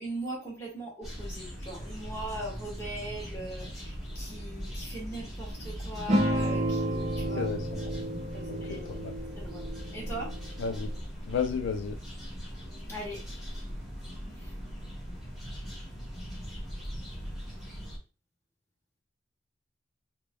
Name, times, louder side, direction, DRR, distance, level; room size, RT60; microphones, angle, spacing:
voice 1, 0.0-7.5 8.3-9.0 9.4-9.6 9.9-10.3 12.8-13.4 14.4-14.5, right 1 dB, 15° left, 1.4 m, -40 dB
sound 1, 1.0-18.0, equal, ahead, 1.0 m, -40 dB
sound 2, 6.1-11.0, right 1 dB, 35° right, 0.4 m, -31 dB
voice 2, 7.4-7.9 8.5-9.1 10.6-10.9 11.3-12.0, left 6 dB, 75° left, 0.3 m, -33 dB
3.5 x 2.1 x 3.0 m
head